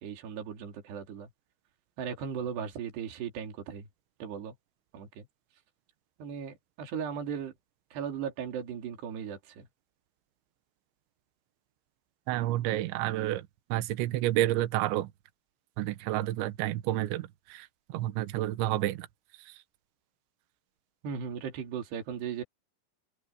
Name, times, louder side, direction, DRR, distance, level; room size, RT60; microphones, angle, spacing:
voice 1, 0.0-1.3 2.0-3.9 4.2-4.6 4.9-5.3 6.2-7.5 7.9-9.7 21.0-22.4, right 7 dB, 55° right, 5.2 m, -37 dB
voice 2, 12.3-15.1 15.8-19.1 19.5-19.6, right 15 dB, 75° right, 3.2 m, -30 dB
open air
omnidirectional pair, 5.9 m